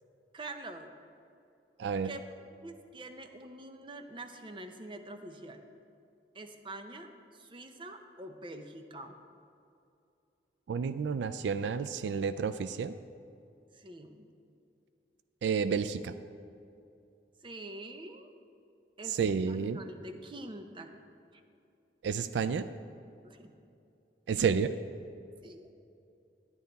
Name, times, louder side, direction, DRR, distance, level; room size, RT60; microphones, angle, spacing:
voice 1, 0.3-0.9 2.0-2.3 2.6-5.6 6.3-9.2 13.7-14.3 17.4-18.3 19.0-19.2 19.5-20.9 21.3-21.4 23.2-23.5 25.4-25.7, right 2 dB, 30° right, 6 dB, 0.6 m, -45 dB
voice 2, 1.8-2.1 10.7-13.0 15.4-16.1 19.1-19.8 22.0-22.7 24.3-24.8, right 6 dB, 80° right, 12 dB, 0.3 m, -30 dB
10.5 x 10.5 x 4.0 m, 2.6 s
head